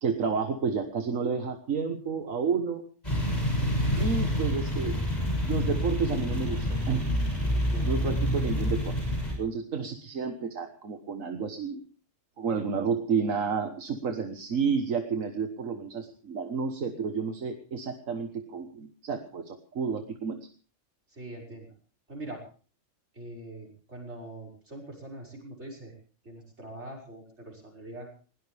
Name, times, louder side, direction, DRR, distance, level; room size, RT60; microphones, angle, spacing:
voice 1, 0.0-2.8 4.0-5.0 5.4-7.1 7.8-8.9 9.4-11.8 12.4-20.4, right 5 dB, 80° right, 6 dB, 1.8 m, -30 dB
sound 1, 3.0-9.3, equal, 30° left, 7.3 m, -28 dB
voice 2, 7.5-7.9 21.1-21.7 22.1-22.5 23.1-25.9 26.2-28.1, right 1 dB, 60° right, 0 dB, 6.2 m, -43 dB
20.5 x 18.0 x 3.5 m, 0.40 s
omnidirectional pair, 1.3 m